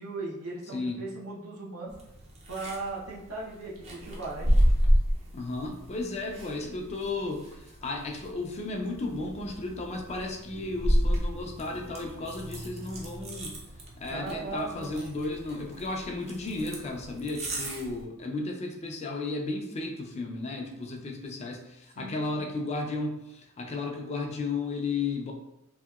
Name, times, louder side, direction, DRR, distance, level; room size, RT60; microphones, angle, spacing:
voice 1, 0.0-1.9 2.5-4.5 14.1-15.0 21.9-22.5, right 3 dB, 80° right, -4 dB, 0.7 m, -38 dB
sound 1, 1.9-18.0, equal, 30° right, 0.5 m, -31 dB
voice 2, 5.3-7.5 7.8-13.6 14.0-25.3, left 3 dB, 30° left, 2 dB, 0.3 m, -34 dB
2.8 x 2.8 x 2.3 m, 0.86 s
head